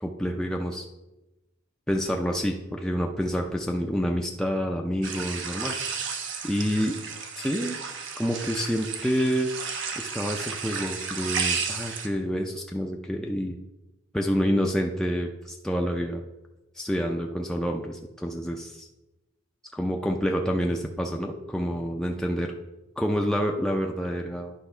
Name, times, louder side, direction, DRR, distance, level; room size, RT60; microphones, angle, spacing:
voice 1, 0.0-0.9 1.9-5.7 6.4-7.0 7.4-7.8 8.2-9.5 10.0-13.6 14.1-16.2 16.7-18.9 19.7-22.5 23.0-24.5, equal, 5° left, 1 dB, 0.4 m, -28 dB
sound 1, 5.0-12.1, right 6 dB, 65° right, 0.9 m, -33 dB
10.0 x 3.4 x 5.5 m, 1.0 s
head